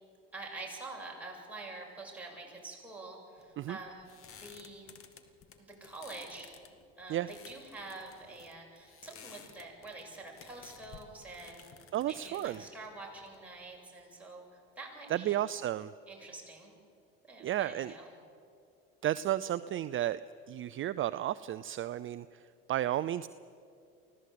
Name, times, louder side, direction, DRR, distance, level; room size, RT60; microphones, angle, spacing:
voice 1, 0.3-4.9 5.6-6.5 7.0-15.4 16.1-16.8 17.3-18.0, right 2 dB, 5° right, -3 dB, 7.5 m, -47 dB
sound 1, 3.4-13.8, left 7 dB, 45° left, 2.0 m, -55 dB
voice 2, 11.9-12.7 15.1-15.9 17.4-17.9 19.0-20.2 20.5-23.3, right 13 dB, 40° right, 14 dB, 0.6 m, -33 dB
24.0 x 16.5 x 8.5 m, 2.5 s
supercardioid pair, 85°, 30 cm